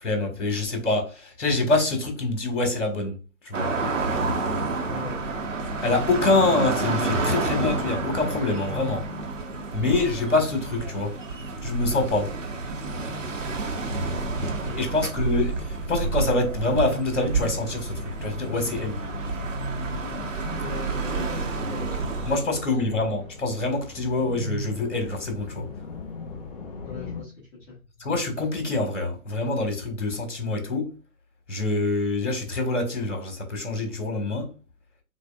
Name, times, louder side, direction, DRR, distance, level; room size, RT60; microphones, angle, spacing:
voice 1, 0.0-3.2 3.4-3.7 5.8-9.0 9.7-11.1 11.6-12.3 14.8-17.9 18.2-19.0 22.3-25.7 28.0-30.9 31.5-34.5, left 2 dB, 55° left, 1.7 m, -25 dB
sound 1, 3.5-22.4, right 3 dB, 60° right, 1.1 m, -29 dB
voice 2, 4.9-5.4 14.4-15.0 20.6-22.4 26.8-27.7, left 4 dB, 15° left, 1.1 m, -40 dB
sound 2, 17.2-27.2, left 2 dB, 35° left, 1.9 m, -38 dB
6.3 x 2.5 x 2.3 m
figure-of-eight pair, 135°, 44 cm